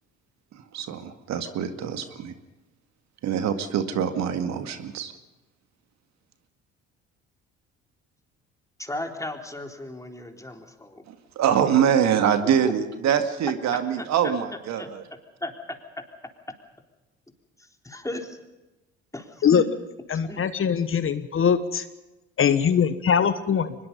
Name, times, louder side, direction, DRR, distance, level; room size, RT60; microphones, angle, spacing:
voice 1, 0.5-2.3 3.2-5.1 11.1-15.0, right 8 dB, 60° right, 8 dB, 2.1 m, -24 dB
voice 2, 8.8-11.0 12.6-12.7 14.0-14.1 14.8-14.9 15.4-15.8 17.6-18.4 19.1-19.7 20.2-20.4, left 1 dB, 10° left, 4 dB, 3.9 m, -35 dB
voice 3, 20.1-21.8 22.4-23.8, left 7 dB, 45° left, 12 dB, 1.4 m, -22 dB
23.5 x 21.0 x 5.5 m, 1.1 s
hypercardioid pair, 60°, 31 cm